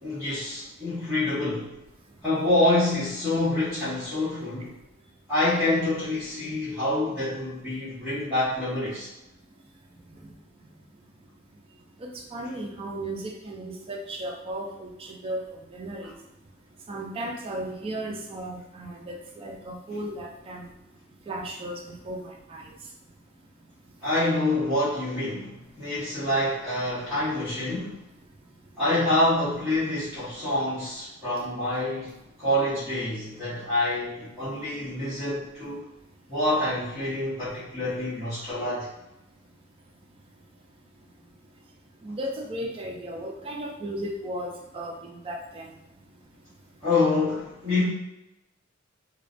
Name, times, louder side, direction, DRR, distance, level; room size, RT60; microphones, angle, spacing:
voice 1, 0.0-1.7 2.2-4.7 5.3-9.1 24.0-28.0 28.8-35.8 36.3-38.9 46.8-47.9, left 1 dB, 5° right, -17 dB, 1.1 m, -26 dB
voice 2, 12.0-15.4 15.7-16.1 16.9-20.6 21.3-21.8 22.1-22.6 42.0-45.7, right 1 dB, 30° right, 0 dB, 0.3 m, -35 dB
2.4 x 2.2 x 2.4 m, 0.93 s
head